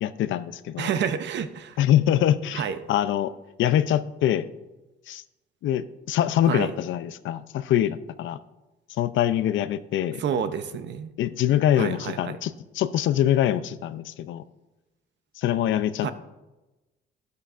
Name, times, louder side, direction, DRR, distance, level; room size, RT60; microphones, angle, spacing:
voice 1, 0.0-0.9 1.8-3.3 3.6-4.5 5.1-5.2 5.6-8.4 8.9-10.2 11.2-14.4 15.4-16.1, left 11 dB, 75° left, 14 dB, 0.5 m, -24 dB
voice 2, 0.8-1.8 2.5-2.8 6.5-6.7 10.2-11.1 11.8-12.4 16.0-16.1, right 7 dB, 65° right, 11 dB, 0.7 m, -29 dB
12.5 x 9.5 x 2.5 m, 1.1 s
cardioid pair, 90°, 20 cm